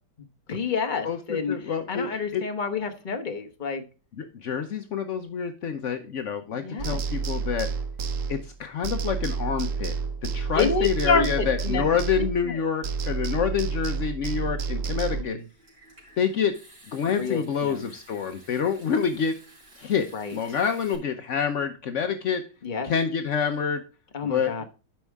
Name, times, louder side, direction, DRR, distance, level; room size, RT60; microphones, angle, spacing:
voice 1, 0.5-3.8 6.5-7.0 10.5-11.8 12.2-12.5 15.1-15.4 17.2-17.8 20.1-20.4 22.6-22.9 24.1-24.6, left 4 dB, 30° left, 5 dB, 0.9 m, -28 dB
voice 2, 1.5-2.4 4.2-7.7 8.3-10.0 10.2-15.4 16.2-16.6 16.9-19.3 19.8-22.4 22.8-23.8 24.2-24.6, left 7 dB, 75° left, 7 dB, 0.7 m, -27 dB
sound 1, 6.8-8.6 8.8-12.6 12.8-15.2, right 5 dB, 80° right, 0.7 m, -30 dB
Water tap faucet / Sink (filling or washing) / Trickle dribble, 15.4-21.0, right 1 dB, 55° right, 4.3 m, -53 dB
12.0 x 5.4 x 3.5 m, 0.34 s
omnidirectional pair, 2.2 m